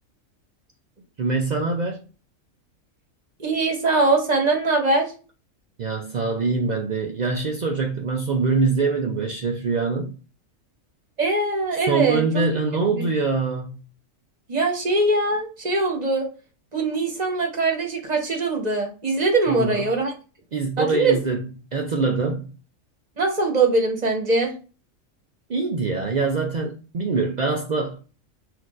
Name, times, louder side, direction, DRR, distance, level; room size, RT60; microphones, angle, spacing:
voice 1, 1.2-2.0 5.8-10.1 11.9-13.8 19.5-19.8 20.5-21.4 21.7-22.5 25.5-28.0, right 4 dB, 85° right, 0.3 m, -24 dB
voice 2, 3.4-5.1 11.2-12.5 12.9-13.1 14.5-16.3 16.7-20.1 20.8-21.2 23.2-24.5, right 3 dB, 35° right, 0.9 m, -22 dB
6.0 x 2.6 x 2.4 m
omnidirectional pair, 1.4 m